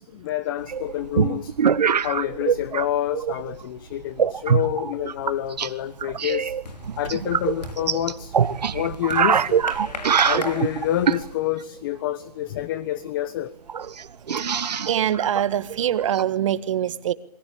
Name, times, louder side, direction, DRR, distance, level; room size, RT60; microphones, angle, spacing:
voice 1, 0.0-1.5 2.0-6.5 7.0-9.6 10.1-13.5, left 13 dB, 30° left, 1.1 m, -28 dB
sound 1, 0.7-2.9 3.1-3.6 4.2-5.7 6.0-11.3 12.9-13.0 13.2-13.3 13.7-16.2, right 7 dB, 80° right, 1.7 m, -23 dB
sound 2, 5.0-5.4 5.7-11.5, left 4 dB, 80° left, 5.8 m, -39 dB
voice 2, 14.6-17.1, right 10 dB, 50° right, 1.7 m, -24 dB
28.5 x 23.0 x 8.6 m
hypercardioid pair, 160°, 21 cm